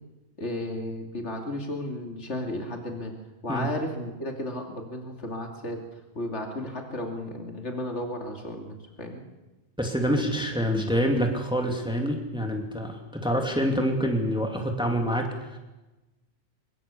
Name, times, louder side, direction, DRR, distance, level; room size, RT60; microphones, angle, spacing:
voice 1, 0.4-3.1 3.4-5.8 6.1-9.2, left 1 dB, 75° left, 2 dB, 3.0 m, -34 dB
voice 2, 9.8-15.6, equal, 5° right, 2 dB, 2.8 m, -26 dB
24.0 x 22.5 x 7.2 m, 1.1 s
omnidirectional pair, 1.2 m